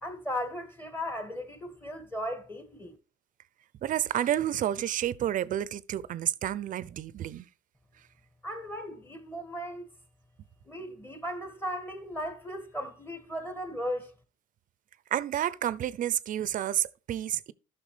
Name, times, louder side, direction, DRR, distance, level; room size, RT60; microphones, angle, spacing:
voice 1, 0.0-3.0 8.4-9.9 10.7-14.1, equal, 10° left, 1.9 m, -36 dB
voice 2, 3.8-7.5 15.1-17.5, right 11 dB, 50° right, 0.6 m, -30 dB
13.5 x 5.9 x 3.3 m
cardioid pair, 110°, 17 cm